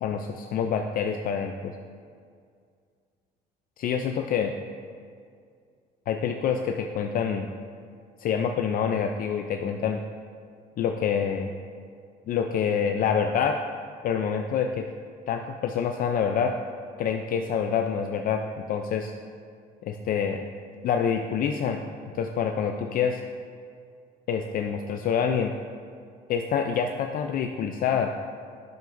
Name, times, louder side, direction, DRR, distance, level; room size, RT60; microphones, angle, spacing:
voice 1, 0.0-1.7 3.8-4.5 6.1-7.5 8.2-10.0 10.8-11.5 12.3-13.6 14.0-14.9 15.3-16.5 17.0-19.1 19.8-20.4 20.8-21.8 22.1-23.2 24.3-25.5 26.3-28.1, left 7 dB, 55° left, 4 dB, 0.4 m, -26 dB
10.5 x 7.5 x 2.6 m, 2.2 s
cardioid pair, 110°, 17 cm